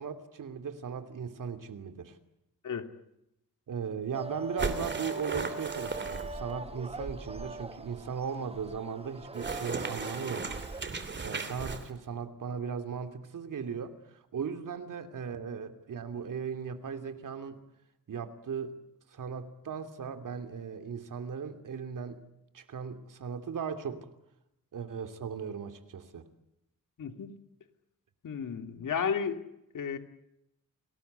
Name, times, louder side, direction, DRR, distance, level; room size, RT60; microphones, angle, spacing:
voice 1, 0.0-2.2 3.7-10.6 11.2-14.0 14.3-17.6 18.1-18.8 19.1-22.2 22.5-24.1 24.7-26.2, right 6 dB, 75° right, 8 dB, 2.9 m, -37 dB
sound 1, 4.1-10.8, right 2 dB, 20° right, 1.2 m, -42 dB
sound 2, 4.6-6.5 9.3-11.9, right 4 dB, 35° right, 2.8 m, -36 dB
voice 2, 27.0-27.3 28.2-29.4 29.7-30.0, left 6 dB, 75° left, 7 dB, 2.6 m, -32 dB
29.5 x 19.5 x 8.2 m, 0.86 s
wide cardioid pair, 160°, 32 cm